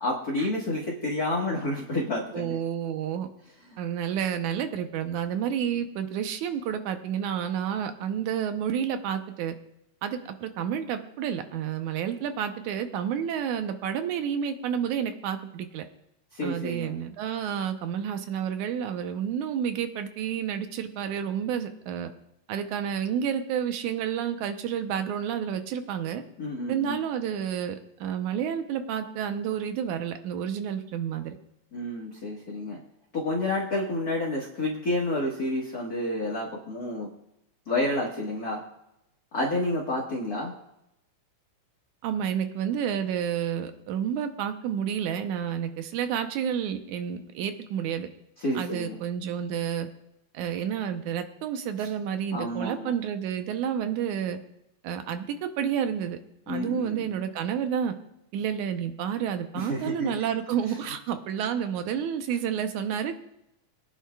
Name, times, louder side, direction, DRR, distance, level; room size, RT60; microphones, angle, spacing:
voice 1, 0.0-2.5 16.3-16.9 26.4-27.0 31.7-32.8 33.1-37.1 37.7-38.6 39.3-40.5 48.4-49.0 52.3-52.9 56.5-57.2 59.5-60.1, left 1 dB, 45° left, -3 dB, 1.2 m, -29 dB
voice 2, 2.3-3.3 3.8-9.6 10.0-15.8 16.4-22.1 22.5-26.2 26.7-31.4 42.0-48.1 48.6-49.9 50.3-54.4 54.8-56.2 56.5-57.9 58.3-63.2, right 8 dB, 70° right, 8 dB, 2.0 m, -30 dB
22.5 x 10.0 x 2.3 m, 0.83 s
omnidirectional pair, 4.1 m